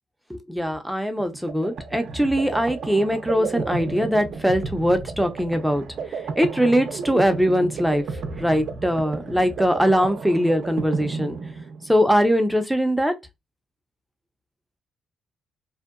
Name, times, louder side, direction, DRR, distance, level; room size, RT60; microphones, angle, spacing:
voice 1, 0.3-5.8 6.4-8.0 8.4-11.4 11.9-13.1, equal, ahead, 0.4 m, -21 dB
sound 1, 1.2-12.0, right 4 dB, 65° right, 0.5 m, -32 dB
2.6 x 2.1 x 2.4 m
cardioid pair, 90°, 0 cm